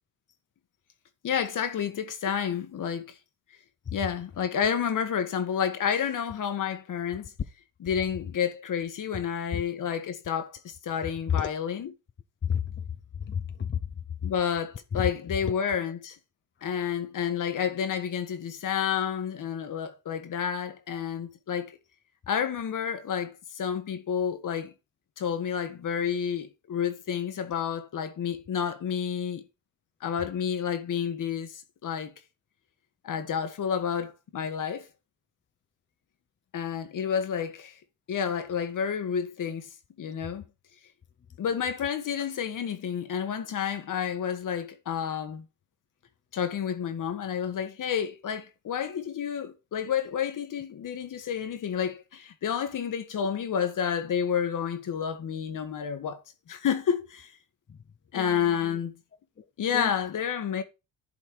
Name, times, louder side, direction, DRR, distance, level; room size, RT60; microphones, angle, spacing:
voice 1, 1.2-3.2 3.9-7.3 7.8-11.9 14.2-16.2 16.6-21.8 22.3-24.7 25.2-29.4 30.0-32.1 33.0-34.9 36.5-37.8 38.1-39.7 40.0-40.4 41.4-45.4 46.3-56.2 56.5-57.3 58.1-58.9 59.6-60.6, left 8 dB, 60° left, 1.5 m, -30 dB
voice 2, 12.4-12.8 13.2-13.8 14.9-15.1 57.7-57.8 58.1-58.8 59.4-59.5 59.7-59.9, left 8 dB, 30° left, 0.7 m, -31 dB
11.0 x 4.3 x 4.7 m
cardioid pair, 80°, 35 cm